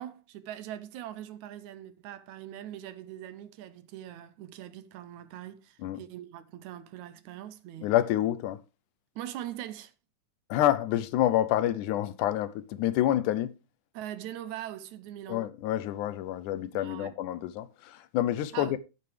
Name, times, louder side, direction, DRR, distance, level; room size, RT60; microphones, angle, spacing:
voice 1, 0.0-7.9 9.2-9.9 13.9-15.5 16.8-17.2 18.5-18.8, right 12 dB, 75° right, 2.0 m, -42 dB
voice 2, 7.8-8.6 10.5-13.5 15.3-18.8, left 13 dB, 80° left, 2.2 m, -28 dB
10.0 x 8.9 x 3.3 m
omnidirectional pair, 3.5 m